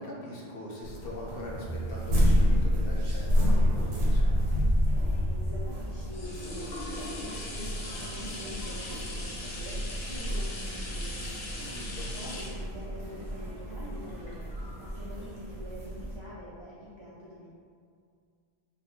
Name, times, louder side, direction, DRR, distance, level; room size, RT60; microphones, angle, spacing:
voice 1, 0.0-4.3 11.6-12.1, equal, 65° left, -4 dB, 0.8 m, -41 dB
sound 1, 0.8-16.2, equal, 75° right, 0.9 m, -29 dB
sound 2, 1.6-3.8, right 3 dB, 30° left, 0.3 m, -42 dB
sound 3, 5.5-14.8 15.4-15.5, left 2 dB, 90° left, 0.9 m, -41 dB
voice 2, 5.5-11.8 12.1-17.5, equal, 50° right, -9 dB, 0.3 m, -45 dB
2.3 x 2.2 x 3.5 m, 2.2 s
omnidirectional pair, 1.1 m